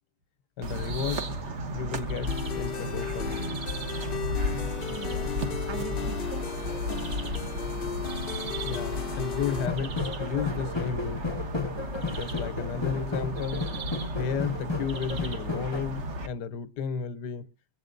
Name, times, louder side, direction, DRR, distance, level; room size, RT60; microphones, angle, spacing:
voice 1, 0.6-1.2 1.7-3.6 8.6-11.3 12.1-13.8 14.2-17.5, left 6 dB, 75° left, 1.4 m, -33 dB
sound 1, 0.6-16.3, equal, 45° right, 1.3 m, -34 dB
sound 2, 2.3-9.7, left 8 dB, 45° left, 0.7 m, -35 dB
voice 2, 4.9-7.3, right 5 dB, 25° right, 0.6 m, -42 dB
sound 3, 9.5-15.9, left 4 dB, 20° left, 0.8 m, -34 dB
23.5 x 7.9 x 3.8 m
omnidirectional pair, 1.9 m